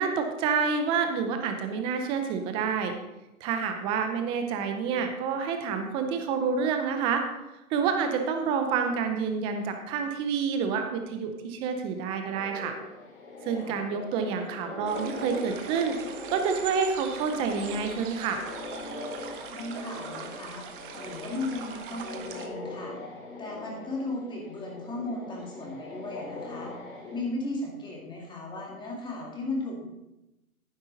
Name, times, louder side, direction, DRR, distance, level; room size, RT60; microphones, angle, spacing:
voice 1, 0.0-2.9 3.4-7.2 7.7-12.8 13.4-18.4, right 6 dB, 10° right, 6 dB, 0.6 m, -28 dB
sound 1, 12.2-27.2, left 2 dB, 65° left, 4.4 m, -41 dB
voice 2, 13.5-13.9 19.5-20.7 20.9-22.9 23.4-26.7 27.1-29.8, left 2 dB, 10° left, -2 dB, 2.2 m, -36 dB
sound 2, 14.9-22.5, right 7 dB, 35° right, 1.1 m, -42 dB
11.0 x 10.0 x 3.9 m, 0.94 s
hypercardioid pair, 135°, 44 cm